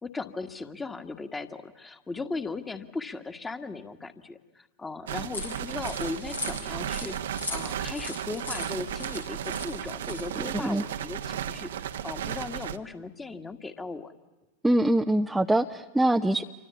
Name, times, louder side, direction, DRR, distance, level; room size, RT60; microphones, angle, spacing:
voice 1, 0.0-7.2 7.5-14.1, left 3 dB, 10° left, 9 dB, 1.8 m, -37 dB
sound 1, 5.1-12.8, right 10 dB, 60° right, 1.2 m, -34 dB
sound 2, 5.3-10.6, left 3 dB, 80° left, 5.2 m, -39 dB
voice 2, 10.5-10.8 14.6-16.4, right 1 dB, 5° right, 5 dB, 0.8 m, -23 dB
28.5 x 25.0 x 8.4 m, 1.1 s
figure-of-eight pair, 90°, 0 cm